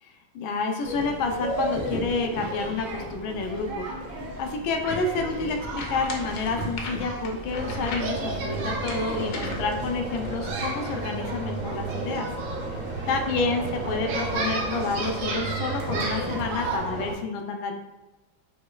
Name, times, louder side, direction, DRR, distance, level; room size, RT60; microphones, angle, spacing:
voice 1, 0.0-12.3 13.1-17.8, left 3 dB, 85° left, 4 dB, 1.4 m, -29 dB
sound 1, 0.8-16.8, right 1 dB, 90° right, 1.6 m, -34 dB
sound 2, 5.2-10.5, left 3 dB, 70° left, 1.0 m, -39 dB
sound 3, 7.5-17.1, right 3 dB, 45° right, 0.6 m, -33 dB
6.0 x 3.1 x 2.2 m, 1.1 s
omnidirectional pair, 2.1 m